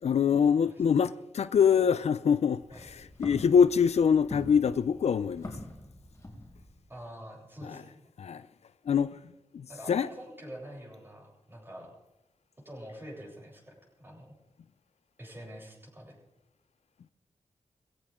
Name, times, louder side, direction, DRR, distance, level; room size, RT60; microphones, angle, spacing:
voice 1, 0.0-5.6 7.7-7.8 8.2-8.4 8.9-9.2 9.5-10.1, left 7 dB, 70° left, 0.5 m, -25 dB
Walk footsteps, 2.4-6.9, left 1 dB, 25° left, 4.2 m, -45 dB
voice 2, 6.9-7.9 9.7-11.9 12.6-14.4 15.2-16.2, equal, 20° right, 7.9 m, -46 dB
21.5 x 16.5 x 3.7 m
wide cardioid pair, 95°, 12 cm